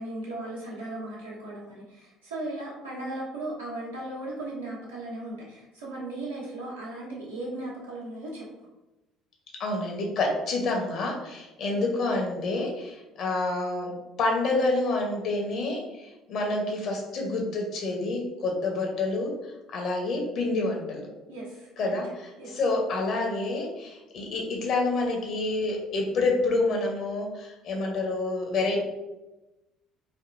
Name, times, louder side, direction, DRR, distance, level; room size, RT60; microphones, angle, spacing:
voice 1, 0.0-8.5 21.3-21.9 22.4-22.5, right 2 dB, 90° right, -7 dB, 0.9 m, -37 dB
voice 2, 9.6-13.9 14.2-21.1 21.8-28.8, left 2 dB, 55° left, 1 dB, 0.8 m, -28 dB
3.5 x 2.3 x 2.5 m, 1.0 s
hypercardioid pair, 55°, 0 cm